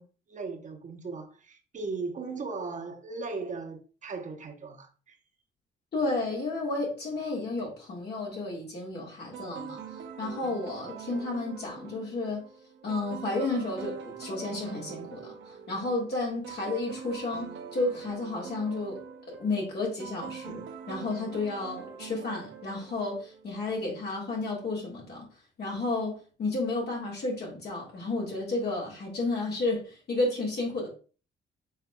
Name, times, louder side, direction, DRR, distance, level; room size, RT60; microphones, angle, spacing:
voice 1, 0.0-5.2 10.4-10.7, right 4 dB, 40° right, 0.9 m, -38 dB
voice 2, 5.9-9.8 10.2-12.5 12.8-19.0 19.3-25.3 25.6-30.9, left 2 dB, 55° left, 1.8 m, -32 dB
sound 1, 9.3-23.6, right 7 dB, 70° right, 0.7 m, -43 dB
5.5 x 3.4 x 2.2 m
cardioid pair, 90°, 20 cm